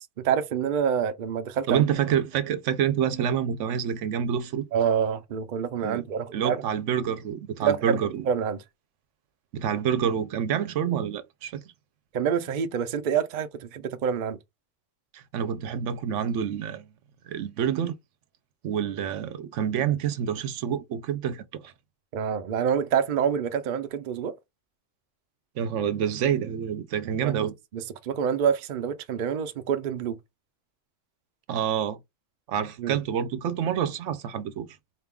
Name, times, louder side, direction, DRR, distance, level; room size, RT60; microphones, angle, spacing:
voice 1, 0.2-1.8 4.7-6.6 7.6-8.6 12.1-14.4 22.1-24.3 27.2-27.5 27.7-30.2 32.8-33.0, right 7 dB, 55° right, 0.6 m, -27 dB
voice 2, 1.7-4.7 5.8-6.0 6.3-8.2 9.5-11.6 15.1-16.9 17.3-17.9 18.6-21.7 25.6-27.5 31.5-32.0 32.5-34.7, right 8 dB, 85° right, 0.9 m, -27 dB
4.3 x 2.3 x 3.5 m
omnidirectional pair, 1.2 m